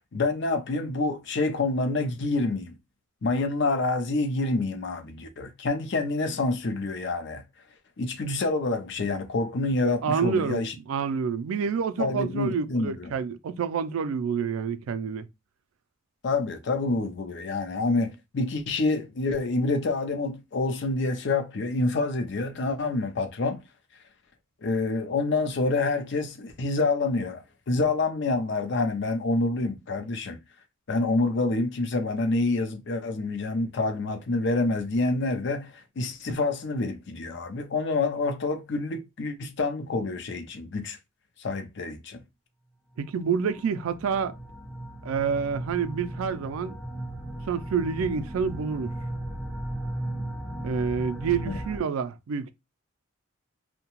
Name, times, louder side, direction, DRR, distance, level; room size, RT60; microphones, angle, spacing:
voice 1, 0.1-2.7 3.2-7.4 8.0-10.7 12.0-13.1 16.2-23.6 24.6-30.4 30.9-41.0 41.4-42.2 51.5-51.6, left 3 dB, 60° left, 0.5 m, -27 dB
voice 2, 10.0-15.3 43.0-44.3 45.0-46.8 47.5-48.9 50.6-52.5, right 6 dB, 85° right, 0.4 m, -28 dB
sound 1, 43.0-51.8, right 1 dB, ahead, 0.4 m, -36 dB
2.7 x 2.2 x 2.9 m
head